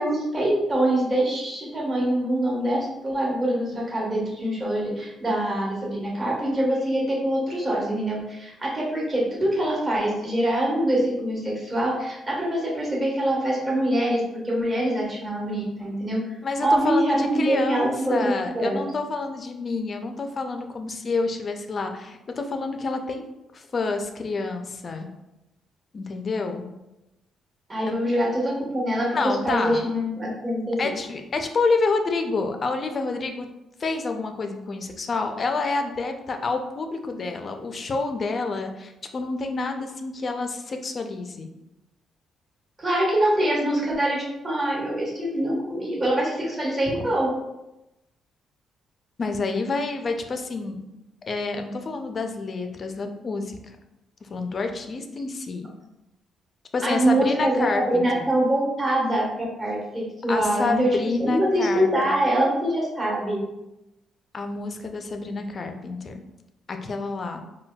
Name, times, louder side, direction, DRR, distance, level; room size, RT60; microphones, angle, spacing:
voice 1, 0.0-16.2 16.6-18.8 27.7-29.1 29.4-30.9 42.8-47.3 56.8-60.9 61.2-63.4, right 1 dB, 25° right, -4 dB, 1.2 m, -24 dB
voice 2, 16.4-23.3 23.5-25.1 25.9-26.6 27.9-28.0 29.1-29.8 30.8-33.5 33.8-41.5 49.2-50.8 51.3-53.8 54.2-55.7 56.7-58.3 60.3-62.1 64.3-66.2 66.7-67.4, left 3 dB, 40° left, 5 dB, 0.4 m, -28 dB
3.9 x 2.2 x 2.2 m, 0.94 s
cardioid pair, 90°, 0 cm